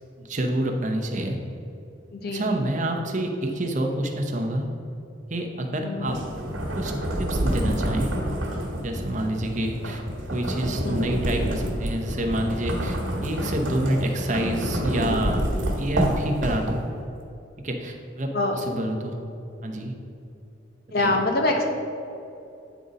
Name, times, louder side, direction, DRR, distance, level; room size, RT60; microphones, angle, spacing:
voice 1, 0.2-1.4 2.3-4.7 5.3-6.2 6.7-6.9 7.2-8.1 8.8-10.0 10.3-15.5 15.8-16.8 17.6-19.2 19.6-19.9 21.0-21.2, right 1 dB, 40° right, 3 dB, 0.7 m, -28 dB
voice 2, 2.1-2.6 5.8-6.2 10.8-11.1 18.3-18.6 20.9-21.7, left 2 dB, 50° left, 2 dB, 0.8 m, -25 dB
sound 1, 6.1-17.1, right 1 dB, 75° right, 1.5 m, -28 dB
9.1 x 4.0 x 4.9 m, 2.7 s
head